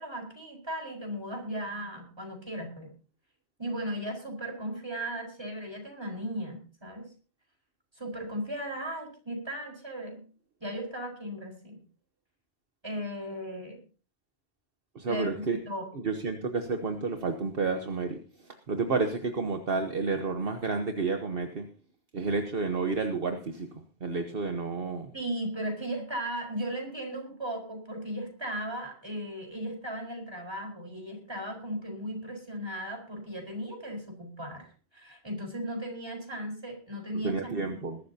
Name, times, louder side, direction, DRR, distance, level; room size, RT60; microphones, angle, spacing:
voice 1, 0.0-2.9 3.6-7.1 7.9-10.2 10.6-11.8 12.8-13.8 15.1-15.9 25.1-37.8, equal, 25° right, 1 dB, 4.7 m, -36 dB
voice 2, 14.9-15.6 15.9-18.2 18.7-21.6 22.1-23.7 24.0-25.1 37.2-38.0, right 4 dB, 65° right, 5 dB, 1.3 m, -30 dB
21.0 x 12.5 x 2.8 m, 0.37 s
omnidirectional pair, 1.1 m